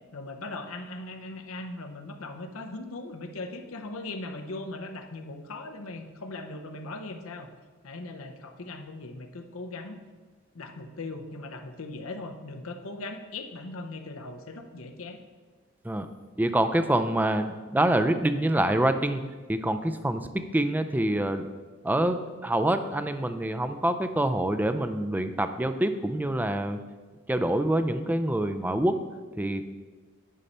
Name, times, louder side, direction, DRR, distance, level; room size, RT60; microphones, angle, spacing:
voice 1, 0.1-7.5 7.8-10.0 10.5-15.2, left 2 dB, 75° left, 5 dB, 0.7 m, -39 dB
voice 2, 16.4-19.2 19.5-21.5 21.8-26.8 27.3-29.0 29.4-29.6, right 1 dB, 10° right, 9 dB, 0.4 m, -26 dB
9.9 x 5.4 x 4.3 m, 1.4 s
head